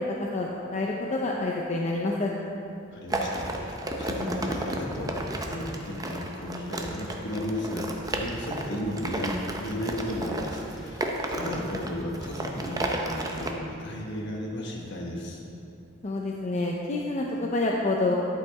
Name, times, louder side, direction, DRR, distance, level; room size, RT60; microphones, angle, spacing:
voice 1, 0.2-2.3 16.0-18.1, left 2 dB, 35° left, -2 dB, 0.5 m, -28 dB
voice 2, 2.9-15.4, left 1 dB, 60° left, -1 dB, 1.3 m, -34 dB
sound 1, 3.1-13.5, right 1 dB, 20° right, 0.6 m, -33 dB
11.0 x 5.7 x 4.1 m, 2.7 s
head